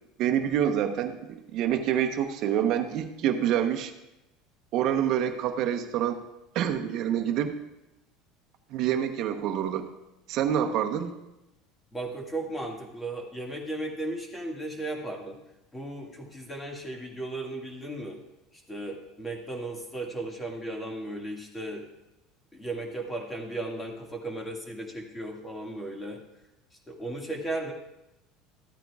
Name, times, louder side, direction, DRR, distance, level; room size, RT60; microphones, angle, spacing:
voice 1, 0.2-3.9 4.7-6.2 6.5-7.5 8.7-9.9 10.3-11.2, right 9 dB, 55° right, 6 dB, 0.9 m, -27 dB
voice 2, 11.9-15.4 15.7-18.2 18.7-21.8 22.5-26.2 26.9-27.7, right 2 dB, 15° left, 1 dB, 1.9 m, -35 dB
13.5 x 8.9 x 2.4 m, 0.93 s
supercardioid pair, 125°, 0 cm